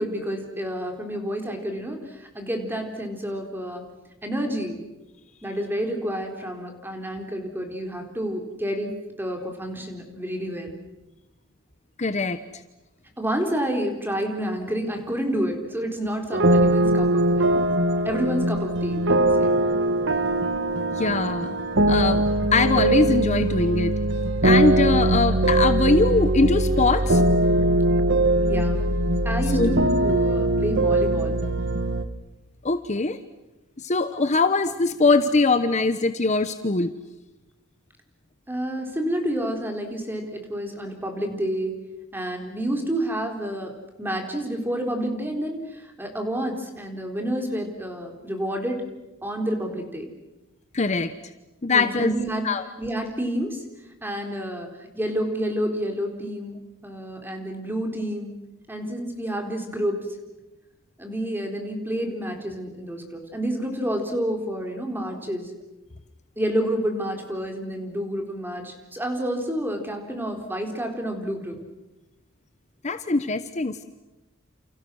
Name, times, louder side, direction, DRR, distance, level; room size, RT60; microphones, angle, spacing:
voice 1, 0.0-3.8 4.2-4.8 5.4-10.8 13.2-17.6 18.0-19.5 28.4-28.8 29.2-31.4 38.5-41.8 42.1-48.8 49.2-50.1 51.7-52.5 52.8-53.6 54.0-56.6 56.8-58.3 58.7-60.0 61.0-65.5 66.4-71.6, equal, 10° right, 3 dB, 4.1 m, -29 dB
voice 2, 12.0-12.4 21.0-21.6 21.9-22.2 22.5-23.9 24.4-27.2 29.5-29.7 32.6-33.2 33.8-36.9 50.7-51.1 51.6-52.1 52.4-52.6 72.8-73.9, left 3 dB, 35° left, 11 dB, 0.9 m, -22 dB
sound 1, 16.3-32.0, right 1 dB, 60° right, 1.6 m, -21 dB
29.5 x 28.5 x 6.4 m, 1.0 s
head